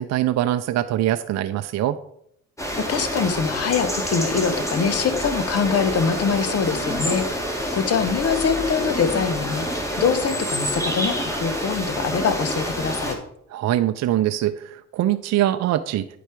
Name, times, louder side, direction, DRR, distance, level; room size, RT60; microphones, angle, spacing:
voice 1, 0.0-2.0 13.5-16.1, right 13 dB, 60° right, 9 dB, 0.4 m, -23 dB
sound 1, 2.6-13.1, equal, 10° left, 1.8 m, -27 dB
voice 2, 2.8-13.2, left 6 dB, 55° left, 9 dB, 1.0 m, -24 dB
9.2 x 4.7 x 4.4 m, 0.73 s
cardioid pair, 90°, 30 cm